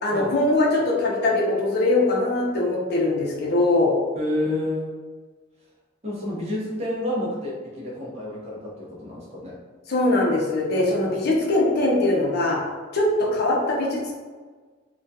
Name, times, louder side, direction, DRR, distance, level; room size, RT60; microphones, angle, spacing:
voice 1, 0.0-3.9 9.9-12.6 12.9-14.1, left 2 dB, 60° left, -3 dB, 0.5 m, -21 dB
voice 2, 4.1-4.9 6.0-9.6, left 1 dB, 35° right, -6 dB, 0.7 m, -29 dB
2.2 x 2.2 x 2.6 m, 1.4 s
head